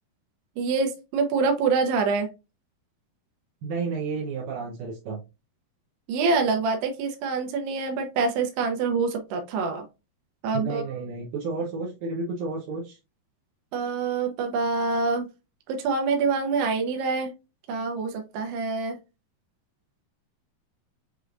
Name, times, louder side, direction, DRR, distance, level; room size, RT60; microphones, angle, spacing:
voice 1, 0.6-2.3 6.1-9.9 10.4-10.8 13.7-15.3 15.7-17.3 17.7-19.0, right 4 dB, 90° right, 3 dB, 2.9 m, -26 dB
voice 2, 3.6-5.2 10.5-13.0, right 4 dB, 70° right, -5 dB, 2.5 m, -31 dB
6.7 x 3.2 x 2.5 m, 0.28 s
omnidirectional pair, 4.6 m